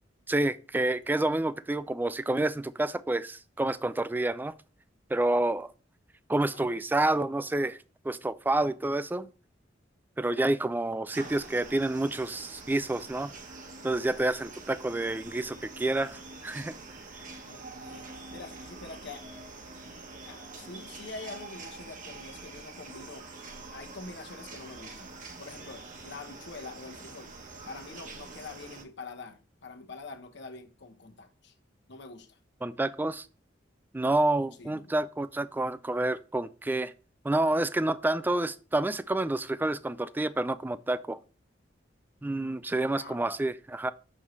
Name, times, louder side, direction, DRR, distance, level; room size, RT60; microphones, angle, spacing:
voice 1, 0.3-4.5 5.1-5.7 6.3-7.8 8.0-9.3 10.2-13.3 13.8-16.7 32.6-33.3 33.9-36.9 37.2-41.2 42.2-43.9, right 2 dB, 10° right, 0.3 m, -28 dB
sound 1, 11.1-28.8, right 3 dB, 45° right, 1.1 m, -45 dB
voice 2, 17.4-19.2 20.2-23.3 23.7-25.1 25.4-27.3 27.6-31.5 31.9-32.4 34.6-34.9 42.9-43.2, left 3 dB, 65° left, 1.0 m, -45 dB
6.5 x 5.5 x 3.1 m
head